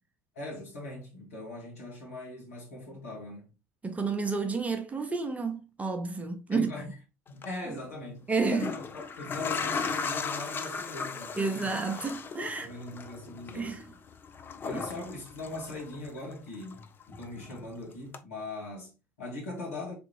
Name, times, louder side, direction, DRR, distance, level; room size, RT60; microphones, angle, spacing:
voice 1, 0.4-3.5 6.5-7.0 7.3-8.3 8.5-11.8 12.6-13.8 14.6-20.0, left 2 dB, 75° left, 1.9 m, -41 dB
voice 2, 3.8-6.7 8.3-8.7 11.4-12.7 13.5-13.8, right 4 dB, 20° right, 0.7 m, -30 dB
sound 1, 7.3-7.5 8.3-16.3 16.6-17.7 18.1-18.2, left 5 dB, 25° left, 0.5 m, -37 dB
3.5 x 3.5 x 3.1 m
figure-of-eight pair, 65°, 8 cm